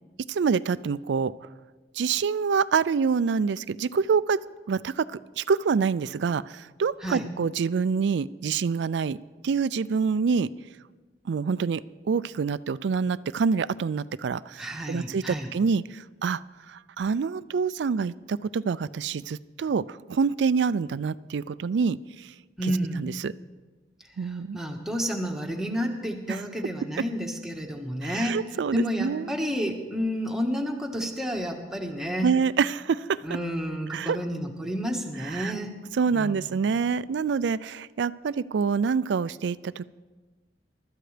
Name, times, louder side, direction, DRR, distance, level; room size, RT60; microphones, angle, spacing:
voice 1, 0.3-1.3 2.0-4.4 4.7-9.2 9.4-10.5 11.3-16.4 16.7-22.3 23.0-23.3 24.2-24.6 26.3-26.4 28.0-29.3 32.2-33.2 33.9-34.2 35.2-35.5 35.9-39.9, right 5 dB, 70° right, 17 dB, 0.4 m, -26 dB
voice 2, 14.6-15.5 22.6-23.0 24.2-28.4 28.7-32.3 33.2-35.7 36.1-36.5, equal, 5° right, 1 dB, 1.4 m, -30 dB
23.5 x 13.0 x 3.3 m, 1.3 s
head